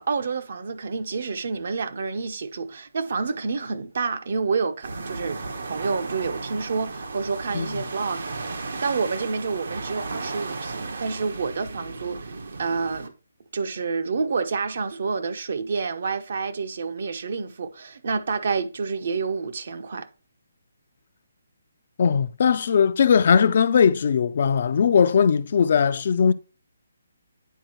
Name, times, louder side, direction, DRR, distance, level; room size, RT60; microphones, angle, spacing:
voice 1, 0.0-12.3 12.6-13.1 13.5-20.1, right 4 dB, 55° right, 0.8 m, -28 dB
sound 1, 4.8-13.1, right 3 dB, 70° right, 1.1 m, -35 dB
voice 2, 22.0-26.3, left 6 dB, 50° left, 0.4 m, -19 dB
9.2 x 4.3 x 3.0 m
hypercardioid pair, 165°, 0 cm